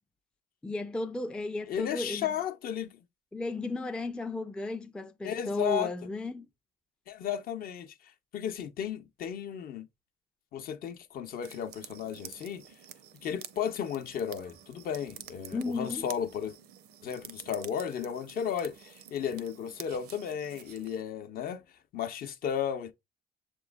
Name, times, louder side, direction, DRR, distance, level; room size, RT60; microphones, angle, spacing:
voice 1, 0.6-2.3 3.3-6.5 15.5-16.1, left 2 dB, 5° left, 0.3 m, -34 dB
voice 2, 1.7-3.0 5.2-5.9 7.1-8.0 8.3-9.9 10.5-12.6 13.2-16.5 17.0-21.6 21.9-22.9, left 8 dB, 60° left, 0.6 m, -34 dB
sound 1, 11.4-21.0, right 10 dB, 70° right, 0.5 m, -50 dB
7.0 x 3.0 x 2.2 m
cardioid pair, 110°, 17 cm